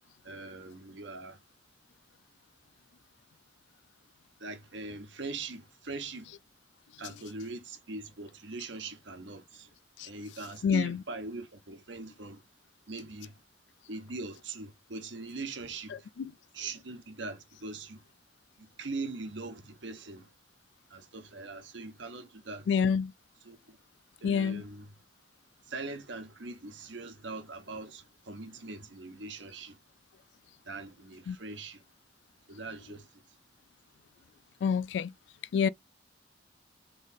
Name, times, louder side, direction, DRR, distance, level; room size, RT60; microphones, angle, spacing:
voice 1, 0.2-1.4 4.4-6.3 7.0-9.7 10.0-12.5 12.9-13.4 13.9-16.1 16.5-18.0 18.6-20.3 20.9-22.8 23.4-23.8 24.2-24.9 25.7-29.8 30.6-31.8 32.5-33.2, right 3 dB, 80° right, 1.0 m, -41 dB
voice 2, 10.6-11.0 22.7-23.1 24.2-24.6 31.3-31.4 34.6-35.1 35.5-35.7, left 6 dB, 70° left, 0.3 m, -27 dB
3.6 x 3.3 x 4.0 m
head